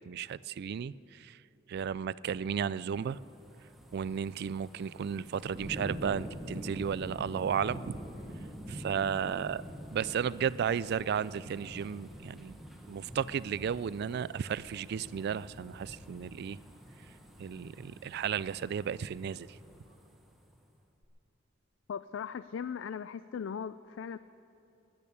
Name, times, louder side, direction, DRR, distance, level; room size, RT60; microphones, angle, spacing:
voice 1, 0.0-1.4 1.7-3.2 3.9-8.0 8.7-9.6 9.9-12.6 12.9-16.6 17.4-19.6, right 7 dB, 55° right, 19 dB, 0.3 m, -34 dB
sound 1, 2.5-20.6 21.0-21.1, equal, ahead, 1.4 m, -46 dB
voice 2, 21.9-24.2, left 7 dB, 70° left, 14 dB, 0.4 m, -38 dB
13.5 x 10.5 x 9.9 m, 2.9 s
head